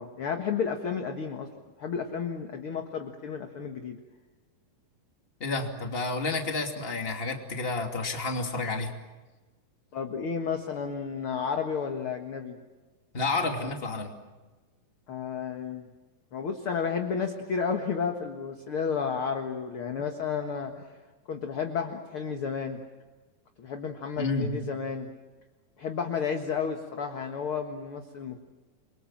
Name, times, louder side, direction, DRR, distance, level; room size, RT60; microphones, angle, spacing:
voice 1, 0.0-1.5 1.8-4.0 9.9-12.6 15.1-15.9 16.3-21.0 21.3-22.8 23.6-25.1 25.8-28.4, left 6 dB, 50° left, 4 dB, 1.9 m, -32 dB
voice 2, 5.4-8.9 13.1-14.1 24.2-24.6, left 3 dB, 20° left, 3 dB, 2.4 m, -30 dB
29.0 x 23.5 x 7.4 m, 1.2 s
omnidirectional pair, 4.1 m